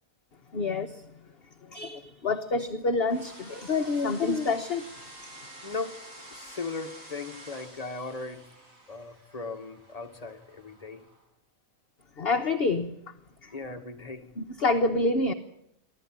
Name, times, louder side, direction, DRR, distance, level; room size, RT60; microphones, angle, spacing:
voice 1, 0.5-1.1 1.7-4.8 12.2-13.0 13.4-13.5 14.4-15.3, left 3 dB, 45° left, 6 dB, 1.2 m, -27 dB
sound 1, 3.1-11.2, right 1 dB, 70° right, 7.4 m, -49 dB
voice 2, 5.6-8.5 8.9-11.0 13.5-14.3, left 4 dB, 25° left, 4 dB, 1.7 m, -38 dB
24.5 x 15.0 x 9.9 m, 0.81 s
omnidirectional pair, 1.5 m